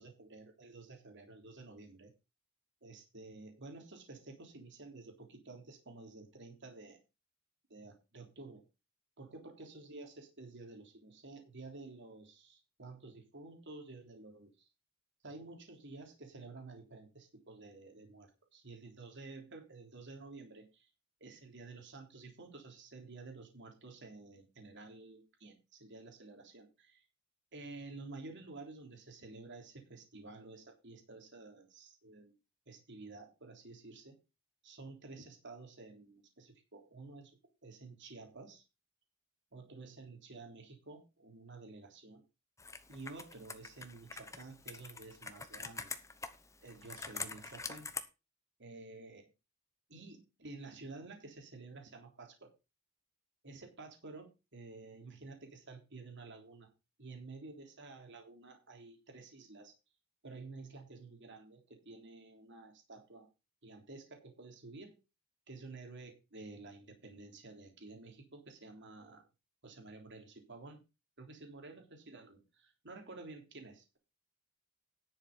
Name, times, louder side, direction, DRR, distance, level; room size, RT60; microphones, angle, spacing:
voice 1, 0.0-2.1 2.8-7.0 7.7-8.7 9.2-14.5 15.2-20.9 21.2-27.1 27.5-32.4 32.7-34.2 34.6-38.6 39.5-42.2 42.9-45.9 46.6-47.9 48.6-49.3 49.9-52.5 53.4-56.7 57.0-59.7 60.2-63.3 63.6-65.0 65.5-69.2 69.6-70.8 71.2-74.0, right 3 dB, 55° right, 3 dB, 3.5 m, -51 dB
Computer keyboard, 42.6-48.0, left 4 dB, 15° left, 1.0 m, -45 dB
10.5 x 7.1 x 5.5 m, 0.28 s
head